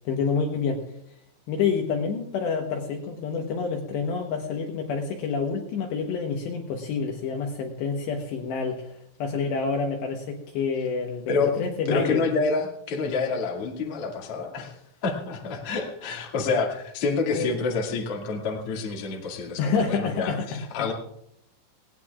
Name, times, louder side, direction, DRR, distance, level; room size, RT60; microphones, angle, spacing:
voice 1, 0.1-0.8 1.5-8.9 9.2-12.3 17.3-17.5 19.6-20.9, left 5 dB, 70° left, 2 dB, 2.9 m, -28 dB
voice 2, 11.3-11.6 11.9-20.9, left 4 dB, 45° left, 0 dB, 2.0 m, -28 dB
19.0 x 18.0 x 2.4 m, 0.74 s
omnidirectional pair, 5.9 m